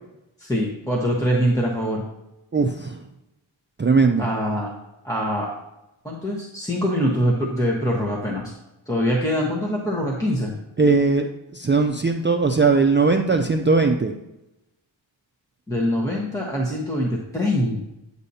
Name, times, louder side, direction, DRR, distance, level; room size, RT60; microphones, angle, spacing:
voice 1, 0.4-2.0 4.2-4.7 5.0-5.5 6.0-8.5 8.9-10.5 15.7-17.9, equal, 5° left, -3 dB, 1.2 m, -23 dB
voice 2, 2.5-3.0 3.8-4.3 10.8-14.1, right 4 dB, 25° right, 3 dB, 0.4 m, -19 dB
9.9 x 8.2 x 2.8 m, 0.92 s
wide cardioid pair, 120°, 47 cm